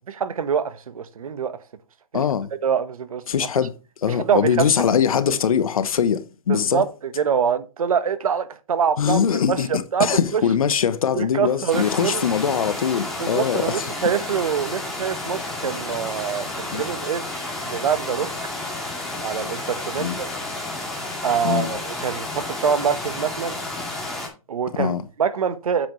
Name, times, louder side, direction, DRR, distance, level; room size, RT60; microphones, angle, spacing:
voice 1, 0.1-1.6 2.1-2.2 2.6-3.5 4.1-5.0 5.3-5.4 6.5-6.9 7.2-9.2 9.5-10.4 11.1-12.2 13.2-18.3 19.2-20.3 21.2-23.6 24.5-25.9, right 7 dB, 70° right, 1.2 m, -25 dB
voice 2, 2.1-2.5 3.3-3.7 4.0-6.8 9.0-13.9 16.7-16.8 20.0-20.2 21.4-21.8 24.8-25.1, left 7 dB, 70° left, 1.0 m, -22 dB
sound 1, 11.7-24.3, left 2 dB, ahead, 2.4 m, -31 dB
8.8 x 7.6 x 3.1 m
hypercardioid pair, 155°, 18 cm